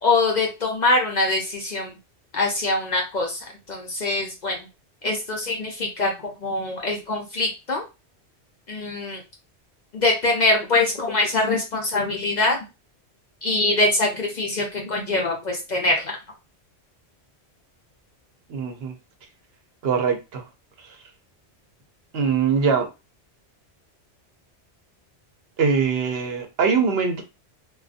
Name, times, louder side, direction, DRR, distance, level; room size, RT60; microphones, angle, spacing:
voice 1, 0.0-1.9 2.3-3.4 3.7-4.6 5.0-6.1 6.4-7.8 8.7-9.2 9.9-12.6 13.4-16.2, left 2 dB, 50° left, 0.6 m, -23 dB
voice 2, 18.5-18.9 19.8-20.4 20.8-21.0 22.1-22.9 25.6-27.2, right 5 dB, 70° right, 0.8 m, -22 dB
2.5 x 2.2 x 2.4 m
omnidirectional pair, 1.1 m